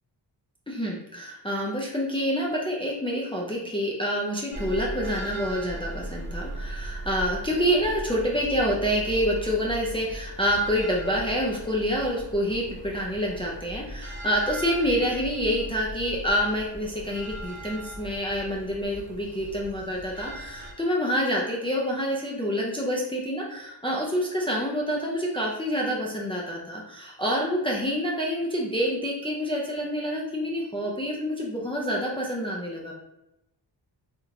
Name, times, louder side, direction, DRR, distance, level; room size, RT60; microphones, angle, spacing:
voice 1, 0.7-32.9, equal, 10° left, -4 dB, 0.4 m, -27 dB
sound 1, 4.5-20.7, equal, 25° right, 0.8 m, -39 dB
3.5 x 2.5 x 2.8 m, 0.88 s
wide cardioid pair, 105°, 46 cm